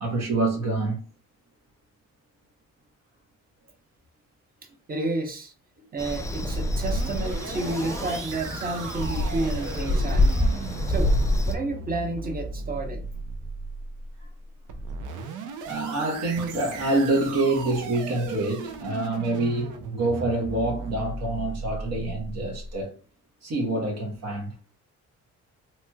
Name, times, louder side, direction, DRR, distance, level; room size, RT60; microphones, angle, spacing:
voice 1, 0.0-1.0 15.7-22.9 23.4-24.5, right 2 dB, 60° right, 1.0 m, -26 dB
voice 2, 4.9-5.5 5.9-10.3 10.9-11.1 11.5-13.0, right 2 dB, 30° right, 0.8 m, -31 dB
sound 1, 6.0-11.5, left 1 dB, 10° left, 0.3 m, -26 dB
sound 2, 6.2-22.8, right 4 dB, 80° right, 0.6 m, -37 dB
3.1 x 3.0 x 2.2 m
cardioid pair, 90°, 30 cm